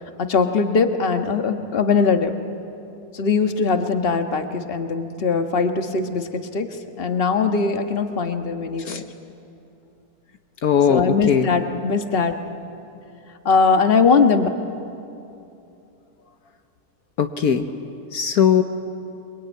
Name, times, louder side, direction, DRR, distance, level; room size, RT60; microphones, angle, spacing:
voice 1, 0.2-2.3 3.1-6.7 7.0-9.0 10.9-12.3 13.4-14.5, left 5 dB, 40° left, 6 dB, 1.5 m, -20 dB
voice 2, 10.6-11.5 17.2-17.7 18.1-18.6, left 8 dB, 70° left, 7 dB, 1.5 m, -19 dB
27.5 x 23.0 x 9.4 m, 2.7 s
omnidirectional pair, 1.7 m